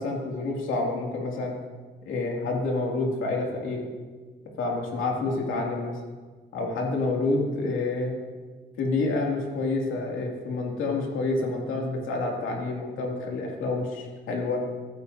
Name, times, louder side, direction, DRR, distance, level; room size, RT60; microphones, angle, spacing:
voice 1, 0.0-1.5 2.1-3.9 4.6-6.0 6.5-8.1 8.8-14.6, left 3 dB, 85° left, -1 dB, 2.7 m, -28 dB
14.5 x 13.5 x 2.8 m, 1.5 s
cardioid pair, 90°, 20 cm